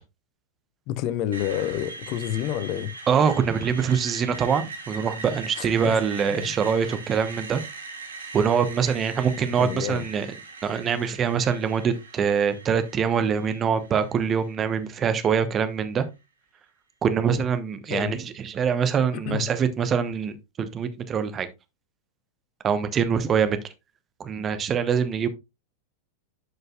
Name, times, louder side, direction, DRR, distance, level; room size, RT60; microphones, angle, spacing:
voice 1, 0.9-2.9 5.6-6.0 6.3-6.5 9.6-10.1 17.9-18.1 19.1-19.5, left 11 dB, 40° left, 0.7 m, -29 dB
Screech, 1.3-15.3, right 4 dB, 70° right, 1.6 m, -40 dB
voice 2, 3.1-7.6 8.3-10.3 10.6-16.0 17.0-21.5 22.6-23.6 24.2-25.3, right 7 dB, 25° right, 1.0 m, -24 dB
11.0 x 5.4 x 2.4 m
figure-of-eight pair, 90°, 0 cm